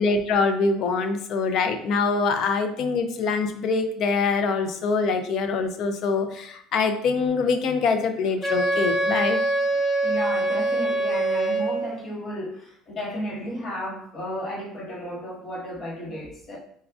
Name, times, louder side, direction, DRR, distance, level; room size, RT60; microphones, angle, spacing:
voice 1, 0.0-9.4, left 4 dB, 60° left, 7 dB, 0.4 m, -24 dB
Wind instrument woodwind instrument, 8.4-12.0, right 2 dB, 5° left, 0.7 m, -24 dB
voice 2, 10.0-16.6, equal, 45° left, -2 dB, 1.1 m, -33 dB
4.2 x 2.4 x 2.3 m, 0.65 s
supercardioid pair, 95°, 0 cm